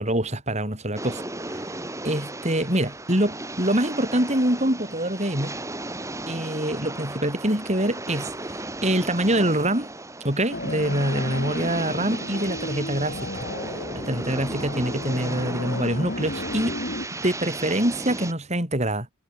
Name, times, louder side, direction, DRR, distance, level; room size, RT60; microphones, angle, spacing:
voice 1, 0.0-1.7 2.0-5.6 6.3-9.9 10.2-13.3 13.9-16.8 17.2-19.1, right 1 dB, 35° right, 6.9 m, -25 dB
sound 1, 1.0-18.3, right 2 dB, 15° right, 4.1 m, -35 dB
sound 2, 10.5-17.1, left 1 dB, 50° left, 7.2 m, -33 dB
head